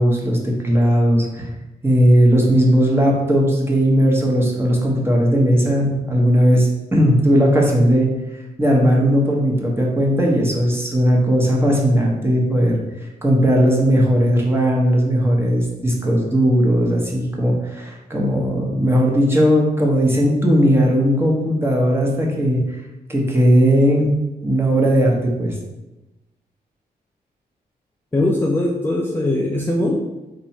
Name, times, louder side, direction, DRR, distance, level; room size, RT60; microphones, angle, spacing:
voice 1, 0.0-1.5 1.8-8.1 8.6-12.8 13.2-22.6 23.1-24.1 24.4-25.5, equal, 15° right, -2 dB, 1.1 m, -17 dB
voice 2, 28.1-30.0, left 1 dB, 10° left, 0 dB, 0.4 m, -20 dB
4.5 x 2.6 x 4.4 m, 1.0 s
cardioid pair, 85°, 17 cm